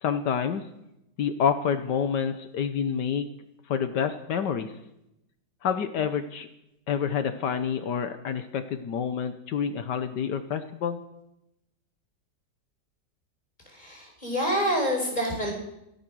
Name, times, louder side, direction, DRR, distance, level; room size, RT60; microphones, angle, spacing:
voice 1, 0.0-0.7 1.2-3.3 3.7-4.7 5.6-6.5 6.9-11.0, left 7 dB, 75° left, 9 dB, 1.6 m, -28 dB
voice 2, 13.7-15.5, equal, 25° left, 1 dB, 5.2 m, -27 dB
16.0 x 14.0 x 6.2 m, 0.85 s
omnidirectional pair, 1.9 m